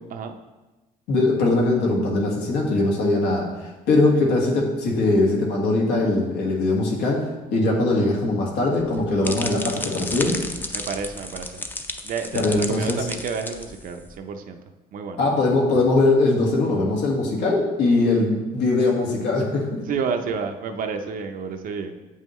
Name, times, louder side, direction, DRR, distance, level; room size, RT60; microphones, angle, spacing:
voice 1, 1.1-7.2 7.5-10.4 12.3-13.0 15.2-19.8, left 2 dB, 80° left, -1 dB, 1.6 m, -21 dB
sound 1, 8.8-14.1, left 2 dB, 10° left, 0.5 m, -33 dB
voice 2, 10.7-11.6 12.0-14.6 14.9-15.2 19.9-21.9, right 5 dB, 55° right, 6 dB, 0.6 m, -30 dB
8.0 x 5.6 x 3.1 m, 1.1 s
cardioid pair, 110°, 17 cm